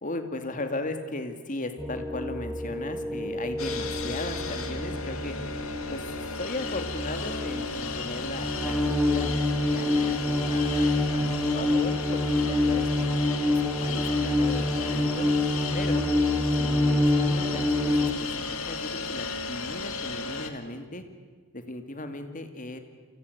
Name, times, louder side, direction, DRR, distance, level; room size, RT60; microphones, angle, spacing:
voice 1, 0.0-5.4 5.9-9.4 9.7-13.1 13.5-15.3 15.7-16.1 16.6-18.3 18.7-21.0 21.5-22.8, left 2 dB, 35° left, 7 dB, 2.4 m, -37 dB
sound 1, 1.8-18.1, left 1 dB, ahead, 1.4 m, -27 dB
sound 2, 3.6-20.5, left 4 dB, 70° left, 2.4 m, -35 dB
29.5 x 24.0 x 8.1 m, 1.5 s
head